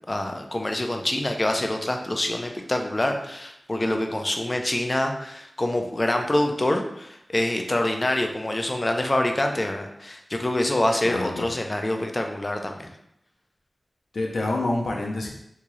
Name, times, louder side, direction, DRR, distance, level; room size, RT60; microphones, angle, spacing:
voice 1, 0.1-12.9, left 1 dB, 30° left, 4 dB, 0.5 m, -26 dB
voice 2, 11.0-11.5 14.1-15.3, left 2 dB, 90° left, -1 dB, 0.5 m, -27 dB
3.6 x 2.8 x 3.1 m, 0.79 s
wide cardioid pair, 65°, 0 cm